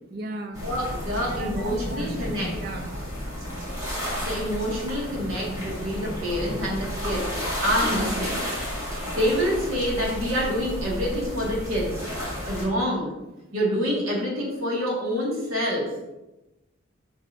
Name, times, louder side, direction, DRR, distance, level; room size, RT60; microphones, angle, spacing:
voice 1, 0.1-0.6 1.2-2.9 7.9-8.2, right 2 dB, 45° right, 6 dB, 0.5 m, -36 dB
sound 1, 0.5-12.6, equal, 15° right, 1.7 m, -32 dB
voice 2, 0.6-2.6 4.2-7.3 7.6-8.4 8.7-12.0 12.4-13.2 13.5-16.0, equal, 85° right, -2 dB, 1.9 m, -27 dB
7.6 x 5.3 x 2.6 m, 0.98 s
head